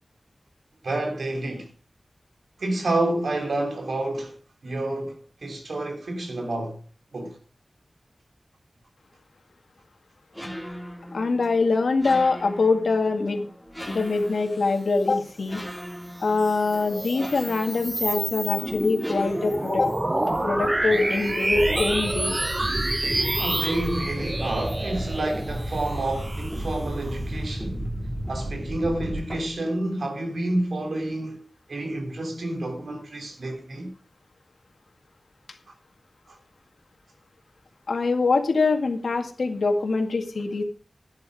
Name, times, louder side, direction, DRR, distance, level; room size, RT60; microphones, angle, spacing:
voice 1, 0.8-1.7 2.6-4.4 4.6-6.8 7.1-7.4 23.4-27.8 28.3-31.4 31.7-33.9 36.3-36.4, right 1 dB, 85° right, 3.2 m, -29 dB
sound 1, 10.3-29.5, equal, ahead, 3.3 m, -35 dB
voice 2, 11.1-13.4 13.8-15.6 16.2-19.9 20.2-22.4 37.9-40.6, left 3 dB, 85° left, 1.9 m, -24 dB
sound 2, 16.2-27.1, right 1 dB, 25° right, 0.8 m, -29 dB
11.5 x 9.7 x 4.9 m
wide cardioid pair, 65°, 0 cm